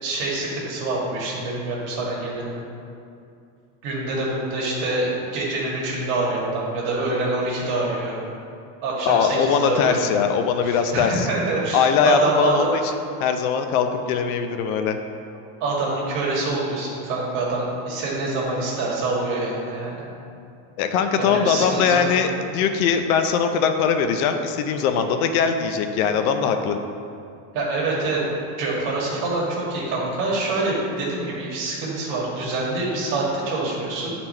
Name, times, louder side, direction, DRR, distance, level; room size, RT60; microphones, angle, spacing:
voice 1, 0.0-2.6 3.8-8.1 8.8-10.1 10.6-12.8 15.6-20.0 21.2-22.1 27.5-28.2 28.6-34.1, right 2 dB, 45° right, -4 dB, 1.8 m, -25 dB
voice 2, 9.1-11.3 11.7-12.7 13.2-15.0 20.8-26.8, left 6 dB, 75° left, 7 dB, 0.7 m, -21 dB
9.7 x 4.3 x 4.3 m, 2.5 s
supercardioid pair, 175°, 43 cm